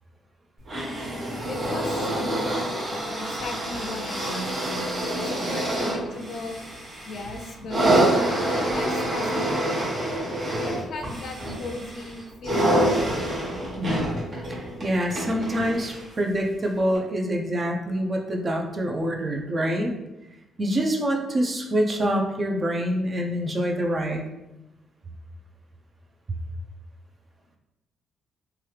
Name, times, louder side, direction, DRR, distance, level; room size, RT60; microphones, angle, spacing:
sound 1, 0.7-16.1 16.9-17.0, right 1 dB, 50° right, 1.5 m, -27 dB
voice 1, 1.5-4.5 5.2-6.7 7.0-7.9 8.5-9.9 10.6-13.4 15.7-15.8, left 3 dB, 65° left, 4 dB, 0.5 m, -37 dB
voice 2, 13.8-14.1 14.5-20.0 20.6-24.2, equal, 35° right, 2 dB, 0.5 m, -26 dB
3.0 x 2.3 x 3.2 m, 0.95 s
cardioid pair, 90°, 0 cm